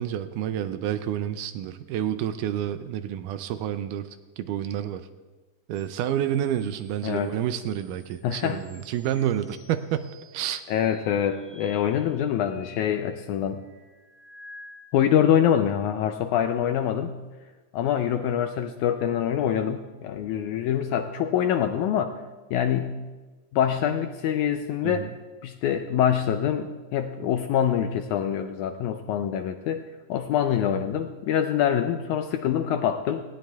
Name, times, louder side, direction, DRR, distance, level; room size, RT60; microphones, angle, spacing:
voice 1, 0.0-5.1 5.7-10.6 24.8-25.1, right 10 dB, 80° right, 11 dB, 2.0 m, -29 dB
sound 1, 5.7-15.3 15.8-17.1 18.9-20.1, left 2 dB, 15° left, 4.7 m, -53 dB
voice 2, 8.2-8.6 10.7-13.6 14.9-17.1 17.7-22.1 22.5-23.0 23.5-25.1 25.4-33.2, left 9 dB, 80° left, 7 dB, 1.8 m, -25 dB
19.0 x 17.0 x 2.3 m, 1.2 s
omnidirectional pair, 3.9 m